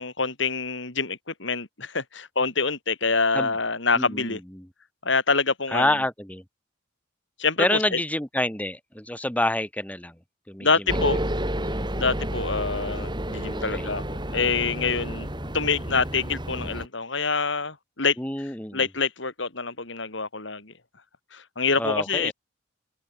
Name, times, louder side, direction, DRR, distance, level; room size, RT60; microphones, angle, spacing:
voice 1, 0.0-4.4 5.0-6.0 7.4-8.0 10.6-11.2 12.0-15.3 15.5-18.2 18.7-20.7 21.3-22.3, left 4 dB, 65° left, 3.5 m, -26 dB
voice 2, 4.0-4.6 5.7-6.4 7.6-10.1 10.5-10.7 13.5-13.9 18.2-18.8 21.8-22.3, left 1 dB, 5° left, 2.0 m, -27 dB
sound 1, 10.9-16.9, right 1 dB, 25° right, 7.7 m, -30 dB
open air
head